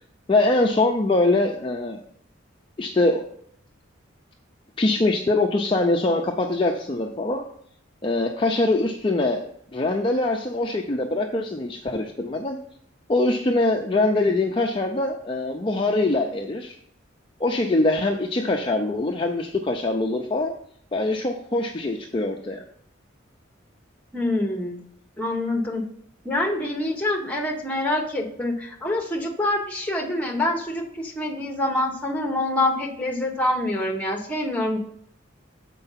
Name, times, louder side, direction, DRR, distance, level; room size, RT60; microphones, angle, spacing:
voice 1, 0.3-2.0 2.8-3.2 4.8-7.5 8.0-12.6 13.1-16.7 17.4-20.5 20.9-22.6, left 2 dB, 25° left, 1 dB, 0.5 m, -23 dB
voice 2, 24.1-24.8 25.2-25.8 26.2-34.8, left 1 dB, 5° left, 1 dB, 1.1 m, -26 dB
6.7 x 4.5 x 5.7 m, 0.65 s
head